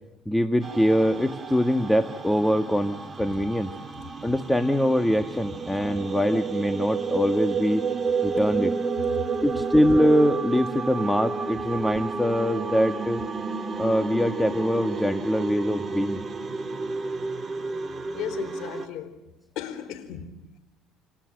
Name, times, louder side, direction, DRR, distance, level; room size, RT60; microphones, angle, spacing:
voice 1, 0.2-3.7 4.2-7.8 8.2-8.7 9.4-13.2 13.8-16.2, equal, 5° left, 8 dB, 1.6 m, -23 dB
sound 1, 0.6-18.9, right 4 dB, 25° right, 3.2 m, -31 dB
voice 2, 18.1-19.2 19.6-20.6, left 10 dB, 75° left, 12 dB, 3.9 m, -36 dB
29.0 x 28.5 x 6.5 m, 0.94 s
supercardioid pair, 95°, 0 cm